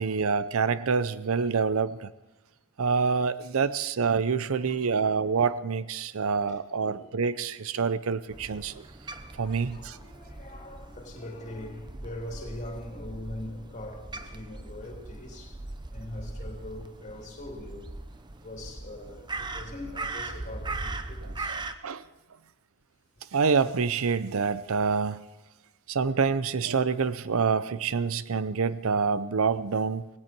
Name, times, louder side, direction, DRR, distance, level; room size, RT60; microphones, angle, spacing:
voice 1, 0.0-2.1 2.8-8.8 9.4-10.0 21.8-22.0 23.3-25.2 25.9-30.1, right 5 dB, 75° right, 15 dB, 0.6 m, -26 dB
voice 2, 4.6-5.1 5.8-6.2 6.8-7.1 8.9-9.1 9.4-15.6 15.9-17.9 18.3-21.7 23.1-23.2, left 1 dB, 35° left, 1 dB, 3.1 m, -42 dB
Crow, 8.3-21.8, right 2 dB, 20° right, 0.7 m, -40 dB
17.5 x 17.5 x 4.5 m, 1.1 s
head